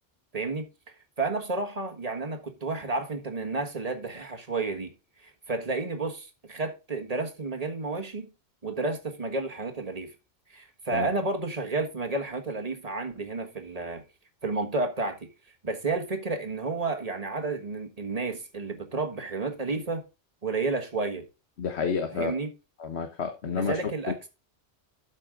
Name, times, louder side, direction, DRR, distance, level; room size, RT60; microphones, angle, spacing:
voice 1, 0.3-0.7 1.2-4.9 5.2-8.3 8.6-10.1 10.5-14.0 14.4-15.3 15.6-20.0 20.4-21.3 22.1-22.5 23.5-24.3, right 3 dB, 35° right, 1.5 m, -31 dB
voice 2, 21.6-22.3 22.8-23.8, left 5 dB, 75° left, 1.3 m, -29 dB
12.5 x 5.8 x 3.8 m
omnidirectional pair, 1.1 m